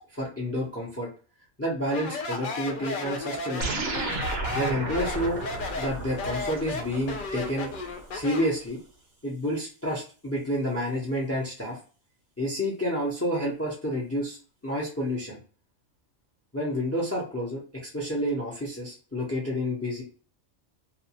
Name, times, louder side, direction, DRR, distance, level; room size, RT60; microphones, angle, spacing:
voice 1, 0.1-1.1 1.6-3.8 4.5-5.4 5.8-7.7 8.1-8.8 9.2-11.8 12.4-14.4 14.6-15.4 16.5-20.0, equal, 15° left, -3 dB, 0.5 m, -29 dB
Speech, 1.8-8.6, left 4 dB, 70° left, 0.5 m, -34 dB
sound 1, 3.6-8.3, right 3 dB, 60° right, 0.8 m, -34 dB
2.5 x 2.3 x 2.8 m, 0.37 s
omnidirectional pair, 1.4 m